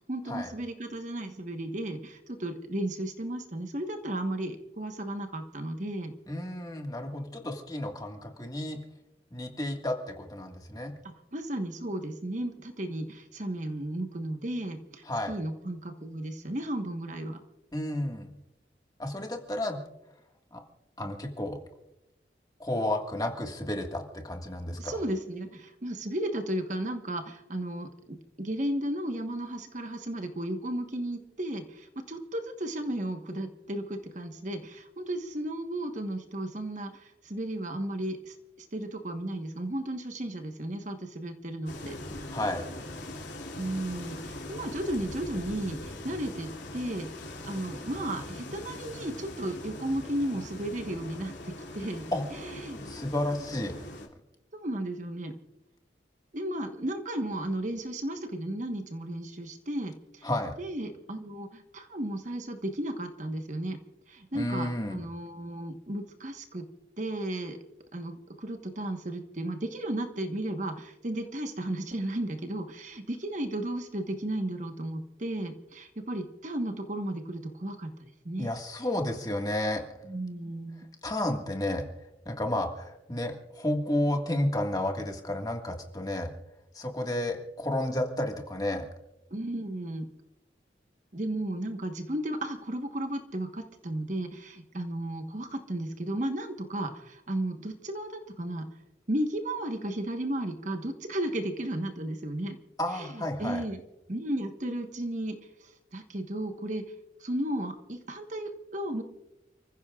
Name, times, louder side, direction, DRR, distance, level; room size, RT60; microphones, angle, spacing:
voice 1, 0.1-6.1 11.0-17.4 24.7-42.0 43.6-47.1 47.4-52.1 52.3-52.8 54.5-55.3 56.3-60.3 60.6-63.8 64.1-66.7 67.0-67.6 67.9-78.5 80.0-80.8 89.3-90.1 91.1-98.7 99.1-102.6 102.9-103.8 104.1-106.8 107.2-109.0, right 1 dB, 45° right, 5 dB, 1.3 m, -34 dB
voice 2, 6.3-8.8 9.3-10.9 15.1-15.3 17.7-18.3 19.0-19.8 20.5-20.6 21.0-21.6 22.6-25.0 42.3-42.6 52.1-52.2 52.8-53.7 60.2-60.6 64.3-65.0 78.4-79.8 81.0-81.8 82.3-86.3 86.7-88.9 102.8-103.6, left 1 dB, 20° left, 3 dB, 1.7 m, -31 dB
sound 1, 41.7-54.1, left 1 dB, 90° left, 3.0 m, -41 dB
30.0 x 15.0 x 2.4 m, 0.91 s
head